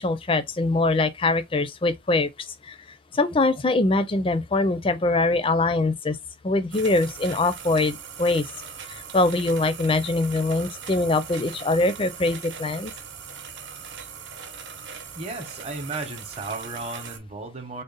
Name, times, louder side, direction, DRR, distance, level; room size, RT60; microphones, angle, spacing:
voice 1, 0.0-2.3 2.6-2.8 3.1-6.2 6.4-8.5 8.9-12.9, left 2 dB, 25° left, 0.4 m, -23 dB
sound 1, 6.7-17.2, right 6 dB, 70° right, 0.9 m, -40 dB
voice 2, 15.1-17.8, right 3 dB, 30° right, 0.8 m, -34 dB
3.8 x 2.1 x 3.9 m
head